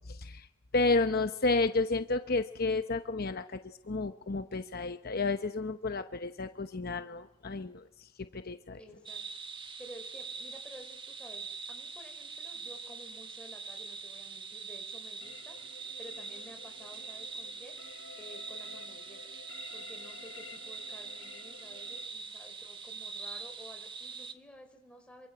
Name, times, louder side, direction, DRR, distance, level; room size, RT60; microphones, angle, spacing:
voice 1, 0.1-0.5 0.7-8.8, left 3 dB, 50° left, 9 dB, 0.9 m, -31 dB
voice 2, 8.8-9.2 9.8-19.2 19.7-25.3, equal, 5° left, 3 dB, 5.0 m, -53 dB
sound 1, 9.1-24.3, right 4 dB, 25° right, 1.5 m, -43 dB
sound 2, 15.2-22.1, left 5 dB, 75° left, 1.5 m, -52 dB
26.5 x 24.0 x 7.9 m, 0.88 s
head